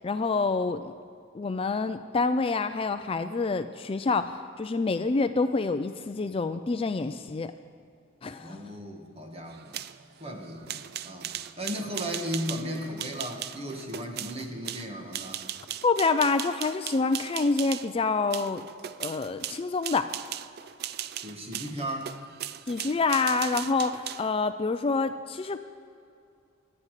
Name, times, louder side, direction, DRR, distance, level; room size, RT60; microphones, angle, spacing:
voice 1, 0.0-0.9 1.3-7.5 8.2-8.6 15.8-18.6 19.0-20.1 22.7-25.6, left 4 dB, 30° left, 10 dB, 0.4 m, -27 dB
voice 2, 8.3-9.8 10.2-15.4 21.2-22.1, equal, 30° right, 2 dB, 1.8 m, -36 dB
sound 1, 9.5-17.9 18.3-24.3, right 11 dB, 50° right, 0.4 m, -38 dB
24.5 x 9.8 x 4.9 m, 2.5 s
head